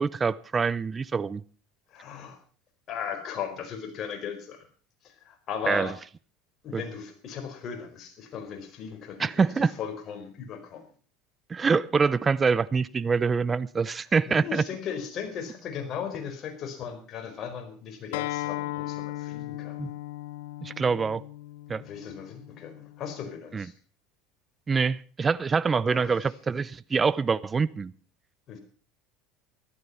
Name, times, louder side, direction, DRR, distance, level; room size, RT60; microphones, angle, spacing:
voice 1, 0.0-1.4 5.7-5.9 6.7-6.8 9.2-9.7 11.5-14.6 19.8-19.9 20.6-21.2 21.7-21.8 23.5-23.7 24.7-27.9, right 5 dB, 25° right, 0.6 m, -25 dB
voice 2, 1.9-2.4 2.9-4.7 5.0-5.9 6.6-10.8 14.3-19.9 21.8-23.7 25.9-26.2 28.5-28.6, left 7 dB, 45° left, 4.8 m, -37 dB
Acoustic guitar, 18.1-23.3, left 16 dB, 80° left, 0.7 m, -37 dB
14.5 x 13.0 x 5.6 m
supercardioid pair, 100°, 0 cm